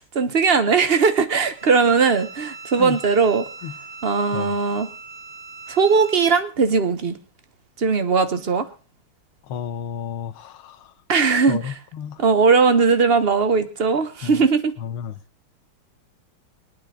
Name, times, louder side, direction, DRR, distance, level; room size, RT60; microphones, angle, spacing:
voice 1, 0.0-3.4 4.0-4.9 5.7-7.2 7.8-8.7 11.1-11.6 12.2-14.7, right 5 dB, 40° right, 0.9 m, -19 dB
Bowed string instrument, 1.5-6.5, right 4 dB, 85° right, 2.3 m, -40 dB
voice 2, 9.4-10.9 11.5-12.3 14.2-14.5 14.8-15.2, left 8 dB, 80° left, 1.9 m, -32 dB
23.0 x 9.4 x 3.8 m
omnidirectional pair, 2.3 m